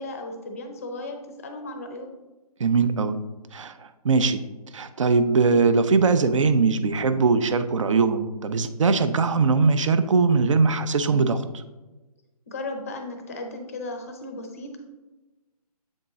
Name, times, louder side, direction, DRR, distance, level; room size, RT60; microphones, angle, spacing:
voice 1, 0.0-2.1 12.5-14.8, left 2 dB, 25° left, 4 dB, 0.5 m, -35 dB
voice 2, 2.6-3.2 3.5-3.7 4.0-4.4 4.7-11.6, right 4 dB, 50° right, 11 dB, 0.5 m, -21 dB
7.7 x 3.6 x 4.0 m, 1.1 s
hypercardioid pair, 170°, 20 cm